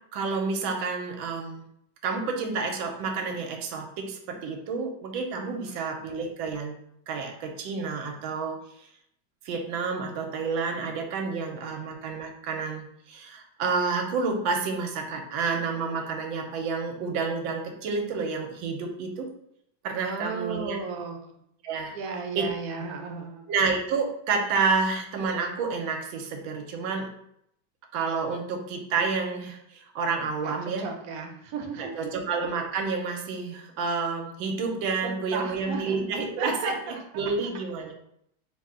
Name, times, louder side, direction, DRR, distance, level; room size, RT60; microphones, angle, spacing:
voice 1, 0.1-1.6 2.0-6.7 7.1-8.9 9.4-19.3 19.8-20.8 21.6-21.9 22.4-22.5 23.5-27.1 27.9-30.9 31.8-37.9, right 4 dB, 85° right, 3 dB, 1.4 m, -29 dB
voice 2, 20.0-21.4 21.9-23.5 30.4-32.1 35.0-37.0, right 4 dB, 60° right, 2 dB, 1.0 m, -35 dB
4.2 x 2.7 x 3.7 m, 0.72 s
omnidirectional pair, 2.1 m